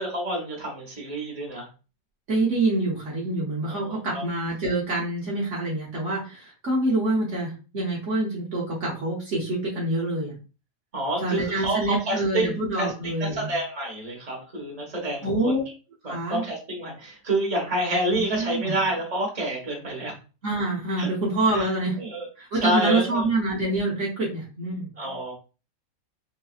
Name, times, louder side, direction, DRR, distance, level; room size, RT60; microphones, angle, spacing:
voice 1, 0.0-1.7 3.7-4.2 10.9-12.9 13.3-15.6 16.0-20.1 21.0-21.1 21.5-21.7 22.0-22.3 22.6-23.3 25.0-25.3, right 1 dB, 30° right, -2 dB, 1.3 m, -28 dB
voice 2, 2.3-10.3 11.2-13.5 15.2-15.6 16.0-16.4 18.1-18.8 20.4-22.0 22.4-24.9, right 2 dB, 60° right, -4 dB, 1.2 m, -26 dB
3.9 x 2.7 x 2.3 m, 0.34 s
omnidirectional pair, 1.5 m